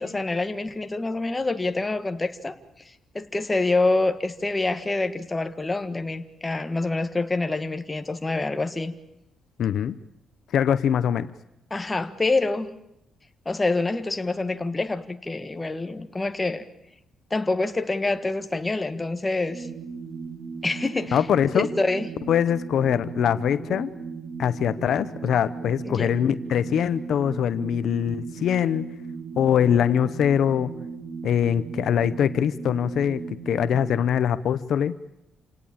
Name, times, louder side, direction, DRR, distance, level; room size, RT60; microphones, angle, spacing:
voice 1, 0.0-2.6 3.1-8.9 11.7-12.7 13.4-16.6 17.3-19.7 20.6-21.2 21.5-22.1 25.8-26.1, left 2 dB, 20° left, 8 dB, 1.6 m, -26 dB
voice 2, 9.6-10.0 10.5-11.3 21.1-21.7 22.3-23.9 24.4-28.9 29.4-30.7 31.2-33.2 33.5-34.9, left 9 dB, 70° left, 14 dB, 0.8 m, -23 dB
sound 1, 19.5-34.0, right 5 dB, 35° right, 2.2 m, -37 dB
27.5 x 18.0 x 8.8 m, 0.87 s
cardioid pair, 120°, 0 cm